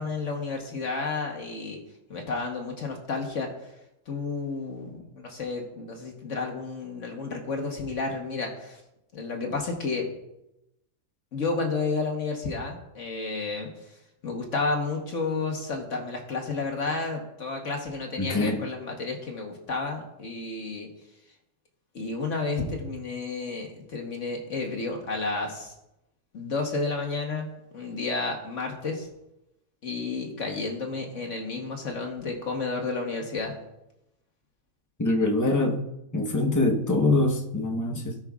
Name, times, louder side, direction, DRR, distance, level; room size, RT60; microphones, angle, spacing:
voice 1, 0.0-1.8 2.1-3.7 4.1-8.8 9.1-10.1 11.3-14.0 14.2-20.9 21.9-25.7 26.3-27.5 27.7-29.1 29.8-33.6, left 3 dB, 50° left, 1 dB, 1.4 m, -31 dB
voice 2, 18.2-18.6 35.0-35.8 36.1-38.2, left 2 dB, 20° left, 2 dB, 0.6 m, -24 dB
17.5 x 6.0 x 2.4 m, 0.90 s
omnidirectional pair, 1.7 m